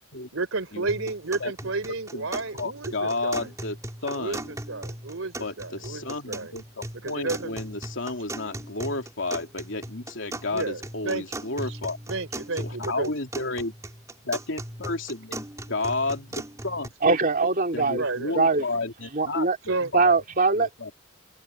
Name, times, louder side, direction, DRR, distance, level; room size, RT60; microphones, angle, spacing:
voice 1, 0.3-3.5 4.1-6.5 7.0-7.5 10.5-11.4 12.1-13.1 18.0-18.6 19.7-19.9, right 3 dB, 90° right, 3.4 m, -32 dB
sound 1, 0.9-16.9, right 1 dB, 15° right, 3.1 m, -38 dB
voice 2, 1.4-1.7 2.1-4.5 5.4-12.0 12.6-13.7 14.2-16.3 16.6-16.9 17.7-20.1 20.5-20.9, left 3 dB, 70° left, 3.0 m, -32 dB
voice 3, 17.0-18.0 18.4-18.6 19.1-19.6 19.9-20.7, right 4 dB, 45° right, 3.0 m, -21 dB
open air
head